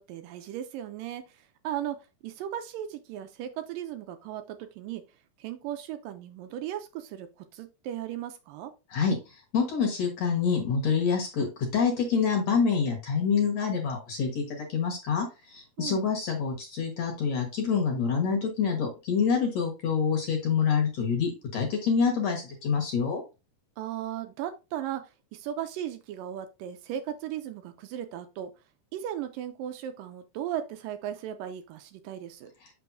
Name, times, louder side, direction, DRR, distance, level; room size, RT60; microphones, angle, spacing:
voice 1, 0.0-2.0 2.2-5.0 5.4-8.7 15.8-16.1 23.8-28.5 28.9-32.5, right 11 dB, 80° right, 8 dB, 2.2 m, -36 dB
voice 2, 8.9-23.2, left 6 dB, 55° left, 2 dB, 2.3 m, -27 dB
6.6 x 6.0 x 2.6 m, 0.27 s
omnidirectional pair, 4.1 m